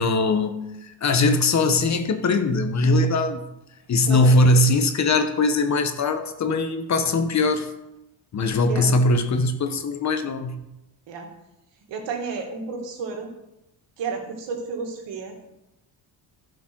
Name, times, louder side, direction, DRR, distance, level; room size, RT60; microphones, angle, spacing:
voice 1, 0.0-3.5 3.9-7.7 8.3-10.6, left 2 dB, 40° left, 8 dB, 1.1 m, -21 dB
voice 2, 11.9-13.3 14.0-15.4, right 4 dB, 75° right, 2 dB, 2.3 m, -31 dB
11.5 x 5.2 x 6.1 m, 0.92 s
cardioid pair, 110°, 44 cm